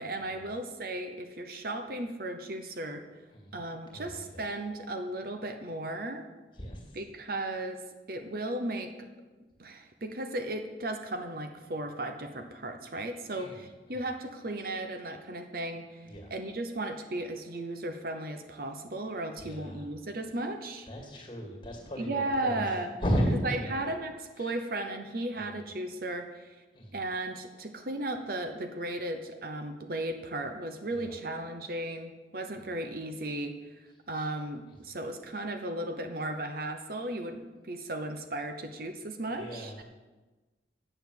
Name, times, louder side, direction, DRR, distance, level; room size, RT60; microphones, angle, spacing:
voice 1, 0.0-3.0 3.5-6.3 6.9-7.8 8.1-9.1 9.6-16.0 16.3-20.9 22.0-22.9 23.4-26.6 26.9-33.6 34.1-39.7, right 1 dB, 55° right, 6 dB, 0.8 m, -35 dB
voice 2, 3.3-3.7 3.9-4.3 6.6-6.8 13.3-13.6 16.0-16.3 19.4-19.9 20.9-22.2 22.5-22.7 23.0-23.3 23.6-23.8 24.4-24.5 25.3-25.6 26.7-27.0 30.9-31.1 34.2-34.3 39.3-39.8, equal, 25° left, 1 dB, 2.3 m, -34 dB
8.8 x 7.1 x 8.0 m, 1.2 s
head